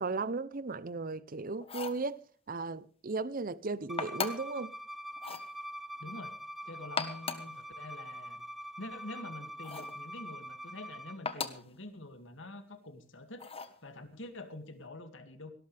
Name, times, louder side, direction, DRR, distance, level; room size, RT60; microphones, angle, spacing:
voice 1, 0.0-2.2 2.5-4.7, right 3 dB, 45° right, 0.7 m, -36 dB
sound 1, 1.6-2.1 4.0-4.6 5.2-5.5 6.8-7.5 9.6-10.0 11.2-11.7 13.4-13.8, left 5 dB, 30° left, 1.4 m, -38 dB
Bowed string instrument, 3.9-11.2, equal, ahead, 0.7 m, -44 dB
voice 2, 6.0-6.4 6.6-8.5 8.8-13.5 13.8-15.5, left 2 dB, 65° left, 2.4 m, -46 dB
18.5 x 18.0 x 3.4 m
head